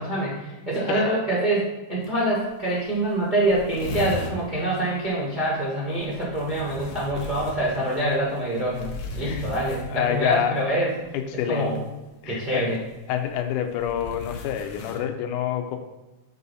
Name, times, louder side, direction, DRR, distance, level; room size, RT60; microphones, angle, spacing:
voice 1, 0.0-8.9 9.2-10.9 11.3-11.8 12.3-12.8, right 1 dB, 60° right, -7 dB, 0.4 m, -25 dB
voice 2, 0.7-1.0 9.2-9.5 9.9-10.6 11.1-11.7 12.2-12.7 13.1-15.8, left 9 dB, 85° left, 5 dB, 2.1 m, -27 dB
sound 1, 2.0-2.1 2.4-2.5 2.8-2.9 3.1-4.4 5.9-10.3 11.6-11.9 12.8-15.0, left 3 dB, 70° left, 1.8 m, -37 dB
5.6 x 4.0 x 5.4 m, 1.1 s
omnidirectional pair, 3.6 m